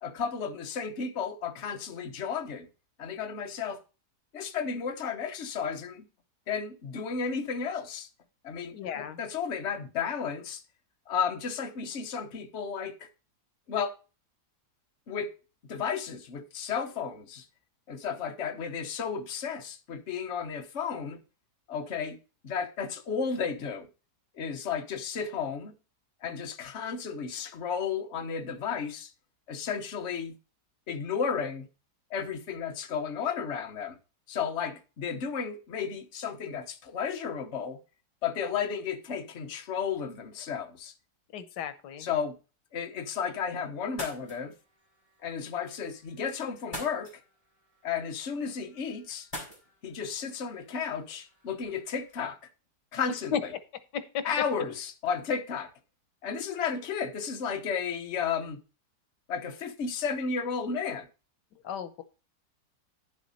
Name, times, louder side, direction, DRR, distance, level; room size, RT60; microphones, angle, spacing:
voice 1, 0.0-2.7 3.0-3.8 4.3-6.1 6.5-8.1 8.4-10.6 11.1-13.1 13.7-13.9 15.1-15.3 15.7-17.4 17.9-21.2 21.7-22.2 22.4-23.9 24.3-25.7 26.2-29.1 29.5-30.3 30.9-31.7 32.1-34.0 34.3-37.8 38.2-40.9 42.0-42.4 42.7-44.5 45.2-47.1 47.8-49.3 49.8-52.4 52.9-53.3 54.2-55.7 56.2-58.6 59.3-61.1, left 6 dB, 45° left, 1.2 m, -33 dB
voice 2, 8.7-9.2 41.3-42.1 53.3-53.4 53.9-54.2 61.6-62.0, left 8 dB, 85° left, 1.4 m, -34 dB
sound 1, 43.8-52.2, left 1 dB, 20° left, 5.1 m, -47 dB
10.5 x 7.4 x 4.1 m
omnidirectional pair, 1.8 m